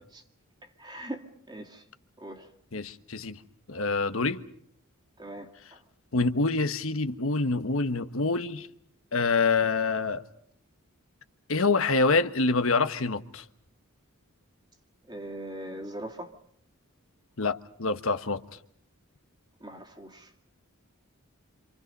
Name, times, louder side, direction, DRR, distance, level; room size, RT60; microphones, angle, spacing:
voice 1, 0.8-1.8 2.2-2.5 5.2-5.5 15.1-16.3 19.6-20.3, right 1 dB, 20° right, 2.2 m, -40 dB
voice 2, 2.7-3.4 3.7-4.4 6.1-8.7 9.1-10.2 11.5-13.4 17.4-18.4, left 3 dB, 70° left, 1.3 m, -26 dB
28.0 x 27.5 x 5.4 m
head